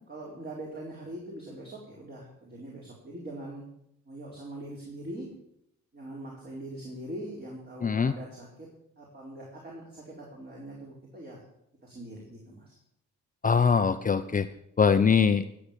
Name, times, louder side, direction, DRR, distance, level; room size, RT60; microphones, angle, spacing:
voice 1, 0.0-3.6 4.0-5.3 5.9-8.7 9.0-11.4 11.8-12.7, right 1 dB, 35° right, -3 dB, 4.5 m, -42 dB
voice 2, 7.8-8.1 13.4-14.5 14.8-15.4, left 6 dB, 25° left, 9 dB, 0.7 m, -22 dB
15.0 x 7.9 x 7.0 m, 0.77 s
cardioid pair, 90°, 30 cm